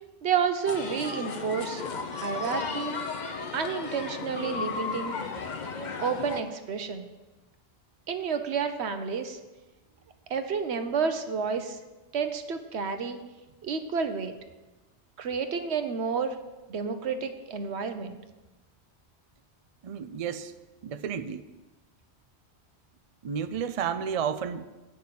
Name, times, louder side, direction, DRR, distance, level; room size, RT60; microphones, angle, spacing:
voice 1, 0.2-1.8 2.1-2.9 3.5-5.2 6.0-7.1 8.1-9.4 10.3-11.8 12.1-13.2 13.6-14.3 15.2-16.4 16.7-18.2, right 6 dB, 75° right, 8 dB, 1.1 m, -30 dB
sound 1, 0.7-6.4, left 4 dB, 45° left, 0.8 m, -34 dB
voice 2, 19.8-20.5 20.8-21.5 23.2-24.7, right 7 dB, 50° right, 11 dB, 0.4 m, -31 dB
8.7 x 5.9 x 7.6 m, 1.1 s
omnidirectional pair, 1.1 m